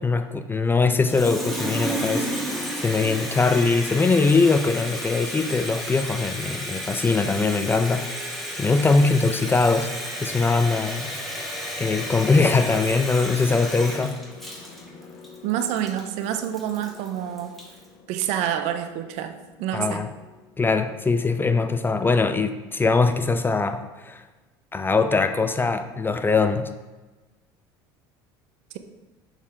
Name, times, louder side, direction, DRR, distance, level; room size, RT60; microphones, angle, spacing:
voice 1, 0.0-2.3 2.8-8.1 8.6-9.9 10.2-11.1 11.8-14.2 19.7-20.1 20.6-24.2 24.7-26.7, left 4 dB, 15° left, 10 dB, 0.4 m, -22 dB
Water tap faucet, 0.9-17.8, equal, ahead, 1.6 m, -32 dB
sound 1, 10.3-22.8, left 6 dB, 70° left, 0.9 m, -46 dB
voice 2, 15.4-17.6 18.1-20.0, right 10 dB, 70° right, 8 dB, 0.6 m, -28 dB
6.5 x 3.6 x 4.9 m, 1.2 s
hypercardioid pair, 75°, 12 cm